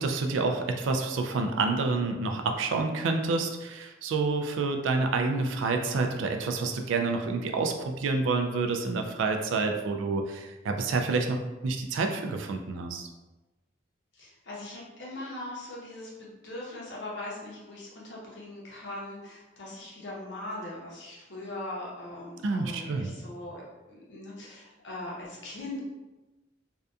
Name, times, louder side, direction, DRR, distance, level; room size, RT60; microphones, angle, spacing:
voice 1, 0.0-13.1 22.4-23.1, right 3 dB, 80° right, 4 dB, 0.3 m, -28 dB
voice 2, 14.1-25.8, left 1 dB, 70° left, -5 dB, 0.8 m, -40 dB
2.7 x 2.2 x 2.3 m, 1.1 s
head